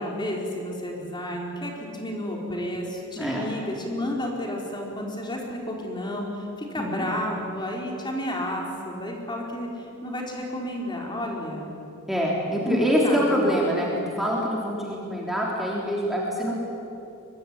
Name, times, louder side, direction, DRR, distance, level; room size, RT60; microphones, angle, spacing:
voice 1, 0.0-11.7 12.6-12.8 13.0-13.4, left 1 dB, 20° left, -1 dB, 4.6 m, -31 dB
voice 2, 3.2-3.5 6.8-7.1 12.1-16.5, equal, ahead, -4 dB, 3.7 m, -25 dB
24.0 x 23.5 x 9.9 m, 2.7 s
head